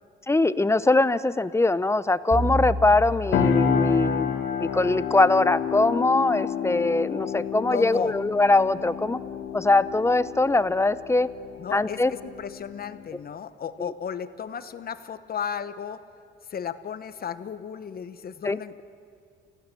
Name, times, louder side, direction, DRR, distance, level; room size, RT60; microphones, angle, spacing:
voice 1, 0.3-9.2 9.5-11.3 11.7-12.1 13.8-13.9 18.4-18.6, left 2 dB, 15° left, 15 dB, 0.6 m, -22 dB
sound 1, 2.3-4.8, equal, 50° right, 6.7 m, -31 dB
sound 2, 3.3-13.0, left 7 dB, 90° left, 2.1 m, -29 dB
voice 2, 7.7-8.1 11.6-16.0 16.5-18.8, left 7 dB, 50° left, 12 dB, 1.1 m, -34 dB
29.0 x 16.0 x 7.6 m, 2.3 s
cardioid pair, 90°, 20 cm